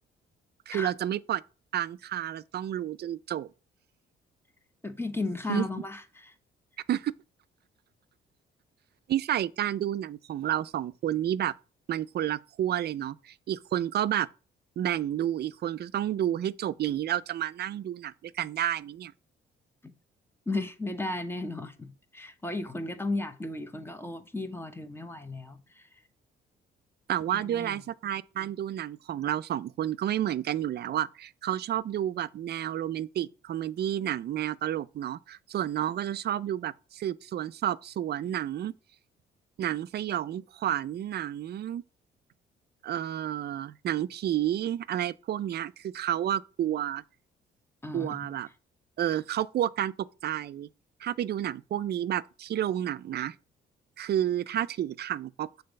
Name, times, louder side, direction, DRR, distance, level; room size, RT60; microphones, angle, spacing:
voice 1, 0.7-1.4 1.7-3.5 5.5-5.7 6.9-7.1 9.1-11.5 11.9-14.3 14.8-19.1 27.1-38.7 39.6-41.8 42.8-47.0 47.9-48.5 49.0-49.9 50.2-50.7 51.0-53.4 54.0-55.6, right 11 dB, 55° right, 0.5 m, -30 dB
voice 2, 4.8-6.3 20.5-25.8 27.3-27.8 47.8-48.3, left 2 dB, 10° left, 1.0 m, -34 dB
6.7 x 4.0 x 5.3 m
cardioid pair, 90°, 20 cm